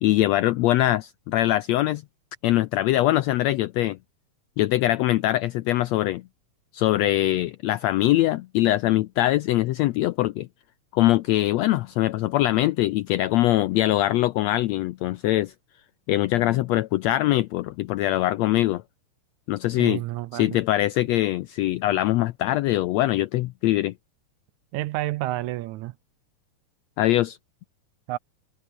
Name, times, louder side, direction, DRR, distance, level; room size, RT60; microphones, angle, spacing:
voice 1, 0.0-2.0 2.4-4.0 4.6-6.2 6.7-10.5 10.9-15.5 16.1-18.8 19.5-20.0 20.3-23.9 27.0-27.4, left 15 dB, 80° left, 1.5 m, -22 dB
voice 2, 19.8-20.5 24.7-25.9 28.1-28.2, right 16 dB, 75° right, 1.9 m, -29 dB
omnidirectional pair, 3.7 m